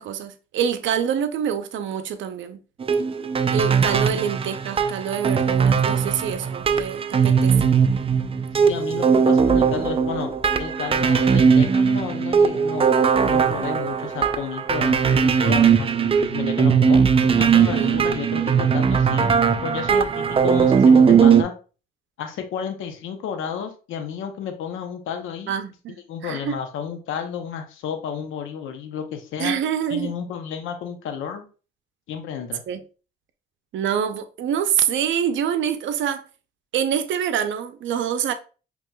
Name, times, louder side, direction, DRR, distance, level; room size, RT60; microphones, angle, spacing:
voice 1, 0.0-2.6 3.5-7.7 17.6-17.9 25.5-26.6 29.4-30.1 32.7-32.8 33.7-36.2 36.7-38.3, right 8 dB, 70° right, 0.6 m, -26 dB
sound 1, 2.8-21.4, right 6 dB, 30° right, 0.4 m, -19 dB
voice 2, 8.6-10.3 10.6-17.0 17.4-19.3 19.6-21.5 22.2-25.6 26.1-29.6 29.9-31.5 32.1-32.6, left 7 dB, 85° left, 0.7 m, -31 dB
5.4 x 3.0 x 2.2 m
cardioid pair, 90°, 20 cm